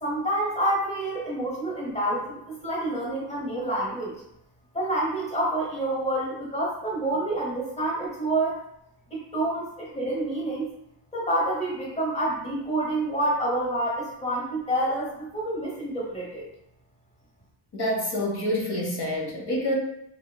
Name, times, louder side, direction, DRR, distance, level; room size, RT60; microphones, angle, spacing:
voice 1, 0.0-4.2 4.7-8.6 9.1-10.7 11.1-16.5, right 1 dB, 15° left, -4 dB, 0.9 m, -28 dB
voice 2, 17.7-19.8, left 1 dB, 60° left, -3 dB, 0.9 m, -27 dB
3.3 x 2.8 x 2.2 m, 0.79 s
wide cardioid pair, 105°, 44 cm